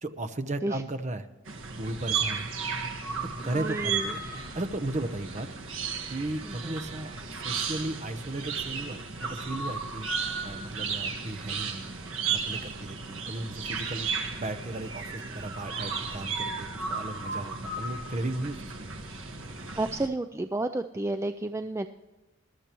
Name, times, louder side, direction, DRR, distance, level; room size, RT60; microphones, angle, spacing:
voice 1, 0.0-1.3 1.8-2.5 3.4-5.5 6.1-10.1 10.4-14.1 14.3-18.9, right 2 dB, 35° right, 10 dB, 0.8 m, -35 dB
sound 1, 1.5-20.1, right 5 dB, 80° right, 1.6 m, -34 dB
voice 2, 3.6-4.1 6.4-6.7 19.8-21.9, right 2 dB, 15° right, 8 dB, 0.3 m, -31 dB
20.5 x 13.0 x 3.0 m, 1.1 s
head